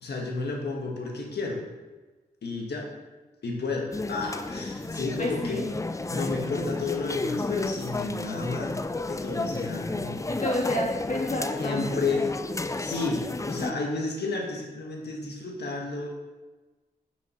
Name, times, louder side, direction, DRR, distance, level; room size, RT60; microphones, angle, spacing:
voice 1, 0.0-1.6 2.4-2.9 3.4-5.6 6.1-8.7 9.1-10.2 11.5-12.2 12.8-13.2 13.5-16.1, left 3 dB, 80° left, 0 dB, 1.6 m, -31 dB
sound 1, 3.9-13.7, left 2 dB, 20° left, 0.4 m, -32 dB
voice 2, 5.2-5.7 10.3-12.2, left 1 dB, 50° left, -3 dB, 2.4 m, -30 dB
5.8 x 5.4 x 5.5 m, 1.2 s
cardioid pair, 50°, 17 cm